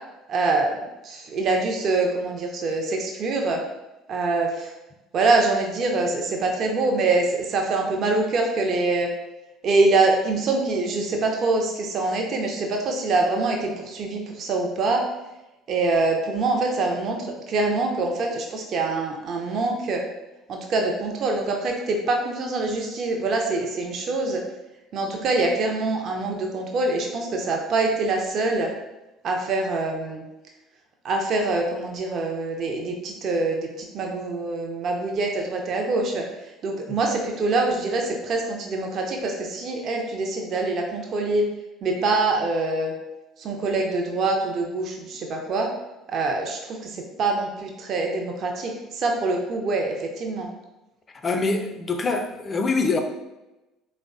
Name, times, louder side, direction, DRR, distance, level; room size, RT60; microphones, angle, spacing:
voice 1, 0.3-0.8 1.0-3.6 4.1-4.7 5.1-9.1 9.6-15.0 15.7-20.0 20.5-24.4 24.9-28.7 29.2-30.2 31.0-36.2 36.6-41.5 41.8-42.9 43.4-45.7 46.1-50.5, right 3 dB, 50° right, 2 dB, 0.4 m, -24 dB
voice 2, 51.2-53.0, left 3 dB, 30° left, 5 dB, 0.3 m, -24 dB
3.3 x 2.0 x 2.5 m, 1.0 s
figure-of-eight pair, 60°, 0 cm